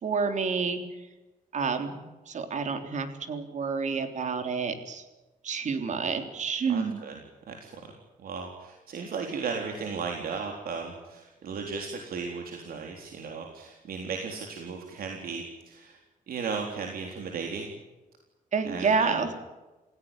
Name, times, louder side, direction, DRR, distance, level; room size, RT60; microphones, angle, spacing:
voice 1, 0.0-0.8 1.5-1.9 2.3-5.0 5.4-7.0 18.5-19.4, right 5 dB, 55° right, 7 dB, 3.6 m, -29 dB
voice 2, 6.7-7.2 7.5-7.9 8.2-16.0 16.3-17.7 18.7-19.2, right 5 dB, 80° right, 2 dB, 3.8 m, -36 dB
28.5 x 17.0 x 9.1 m, 1.1 s
wide cardioid pair, 160°, 15 cm